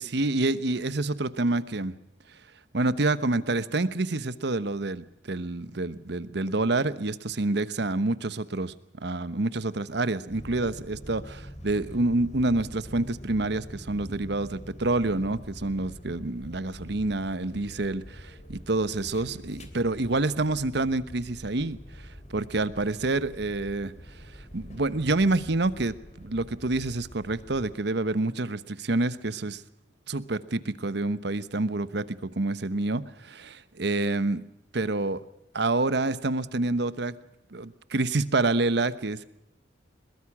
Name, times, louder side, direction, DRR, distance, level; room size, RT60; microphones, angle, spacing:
voice 1, 0.0-1.9 2.7-21.8 22.3-23.9 24.5-29.6 30.1-34.4 34.7-35.2 35.5-37.1 37.5-39.2, right 2 dB, 70° right, 15 dB, 1.1 m, -28 dB
sound 1, 10.3-27.7, equal, 40° left, 3.0 m, -45 dB
22.0 x 21.0 x 6.1 m, 0.82 s
head